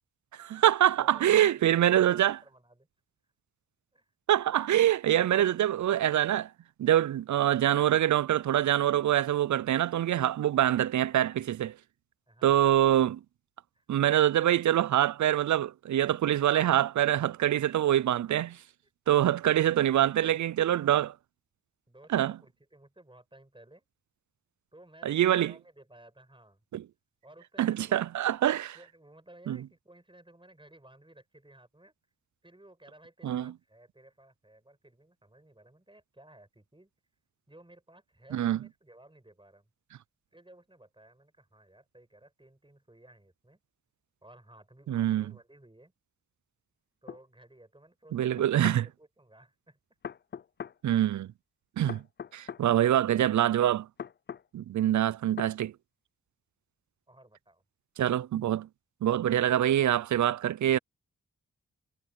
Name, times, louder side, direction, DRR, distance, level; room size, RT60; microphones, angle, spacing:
voice 1, 0.3-2.4 4.3-6.5 6.8-11.8 12.4-13.2 13.9-18.6 19.1-21.1 22.1-22.4 25.0-25.5 26.7-26.8 27.6-28.8 29.5-29.6 33.2-33.5 38.3-38.6 44.9-45.3 48.1-48.9 50.8-51.3 51.8-52.0 52.3-53.9 54.5-55.7 58.0-58.7 59.0-60.8, right 11 dB, 70° right, 0.4 m, -25 dB
voice 2, 1.0-2.9 3.9-4.1 12.3-12.8 13.7-13.8 21.9-23.9 24.7-26.6 27.2-28.4 28.7-31.9 32.4-36.9 37.5-39.7 40.3-43.6 44.2-45.9 47.0-49.8 57.1-57.6, right 1 dB, 15° right, 7.8 m, -56 dB
sound 1, 47.1-47.2 48.4-48.8 50.0-50.8 51.9-52.6 54.0-54.5 55.4-55.5, left 7 dB, 35° left, 0.4 m, -40 dB
cardioid pair, 45°, 31 cm